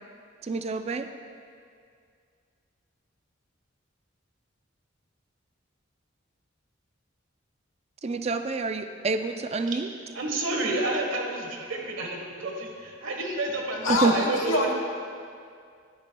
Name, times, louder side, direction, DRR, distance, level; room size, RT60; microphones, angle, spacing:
voice 1, 0.4-1.1 8.0-9.9 13.9-14.2, right 3 dB, 30° right, 8 dB, 0.4 m, -27 dB
voice 2, 10.1-14.7, right 2 dB, 80° right, 1 dB, 1.3 m, -30 dB
voice 3, 13.8-14.7, left 2 dB, 85° left, 2 dB, 1.1 m, -25 dB
11.5 x 10.5 x 2.3 m, 2.2 s
head